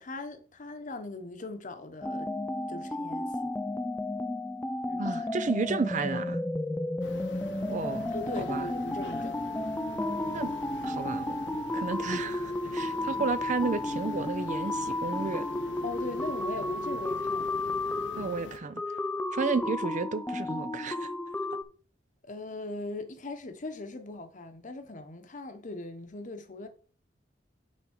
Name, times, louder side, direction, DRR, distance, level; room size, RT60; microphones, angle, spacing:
voice 1, 0.0-2.3 2.7-3.5 4.9-5.3 8.1-9.4 12.9-13.2 15.8-17.6 22.2-26.7, left 2 dB, 45° left, 1.0 m, -40 dB
sound 1, 2.0-21.6, left 2 dB, 10° left, 0.4 m, -33 dB
voice 2, 5.0-6.4 7.7-8.7 10.3-10.5 10.8-11.4 11.7-15.5 18.2-18.8 19.3-21.1, right 4 dB, 45° right, 0.5 m, -32 dB
sound 2, 7.0-18.6, left 2 dB, 85° left, 0.9 m, -45 dB
9.2 x 3.6 x 4.4 m
head